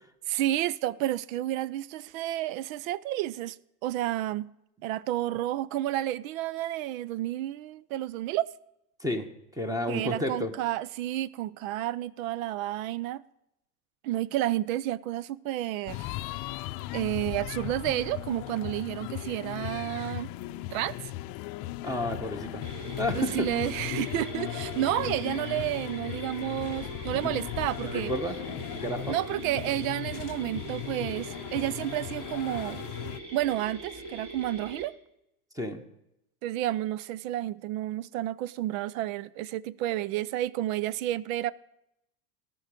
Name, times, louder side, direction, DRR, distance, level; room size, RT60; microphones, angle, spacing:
voice 1, 0.3-3.6 3.8-4.5 4.8-8.5 9.9-13.2 14.0-16.1 16.9-20.3 20.7-21.0 23.1-28.1 29.1-32.8 33.3-35.0 36.4-41.5, right 14 dB, 60° right, 0.6 m, -31 dB
voice 2, 9.0-10.5 21.8-22.6 23.0-23.5 27.1-27.4 27.8-29.2 35.5-35.8, left 1 dB, 5° right, 1.3 m, -32 dB
sound 1, 15.9-33.2, left 16 dB, 45° left, 0.7 m, -37 dB
sound 2, 22.6-34.8, right 2 dB, 40° right, 3.2 m, -42 dB
18.0 x 6.2 x 5.1 m
hypercardioid pair, 90°, 46 cm